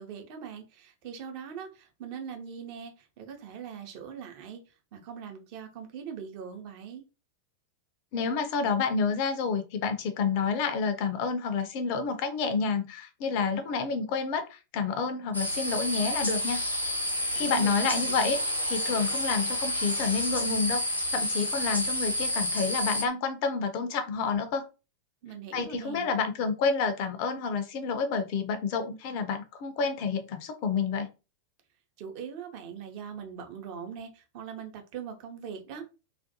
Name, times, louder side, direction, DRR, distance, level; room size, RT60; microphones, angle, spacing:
voice 1, 0.0-7.0 17.3-18.2 25.2-26.2 32.0-35.9, right 7 dB, 45° right, 0.6 m, -41 dB
voice 2, 8.1-16.6 17.3-18.4 18.6-20.8 21.1-24.6 25.5-31.1, left 5 dB, 45° left, 0.4 m, -29 dB
sound 1, 15.3-23.0, left 1 dB, 85° left, 0.7 m, -30 dB
2.4 x 2.2 x 2.6 m
figure-of-eight pair, 90°, 0 cm